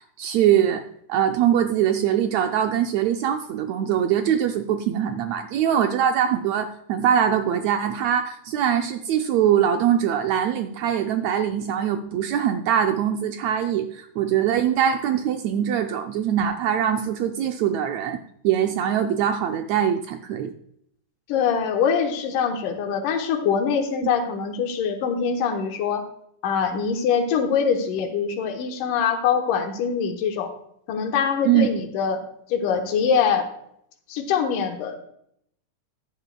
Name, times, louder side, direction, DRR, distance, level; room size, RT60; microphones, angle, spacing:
voice 1, 0.2-0.8 1.1-20.5 31.4-31.7, right 9 dB, 80° right, 6 dB, 1.6 m, -22 dB
voice 2, 21.3-26.0 26.4-30.5 30.9-32.2 32.5-33.5 34.1-35.0, left 6 dB, 90° left, 5 dB, 2.7 m, -23 dB
14.5 x 11.0 x 2.2 m, 0.72 s
omnidirectional pair, 3.6 m